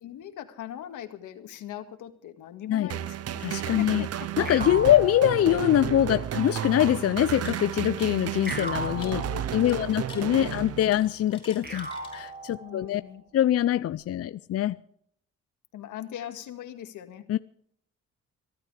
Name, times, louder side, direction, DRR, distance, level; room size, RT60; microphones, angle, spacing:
voice 1, 0.0-3.4 3.8-4.3 4.8-5.0 9.0-10.7 12.6-13.2 15.7-17.3, left 10 dB, 80° left, 2.0 m, -40 dB
sound 1, 2.9-11.2, right 10 dB, 55° right, 0.7 m, -33 dB
voice 2, 3.4-4.1 4.4-9.2 9.5-13.0 13.3-14.8 17.3-17.4, left 12 dB, 50° left, 0.5 m, -24 dB
sound 2, 4.4-6.1 8.5-10.0 11.6-13.1, right 2 dB, 30° right, 7.3 m, -38 dB
sound 3, 7.4-12.5, left 2 dB, 15° left, 5.9 m, -48 dB
24.0 x 12.5 x 3.4 m
cardioid pair, 90°, 30 cm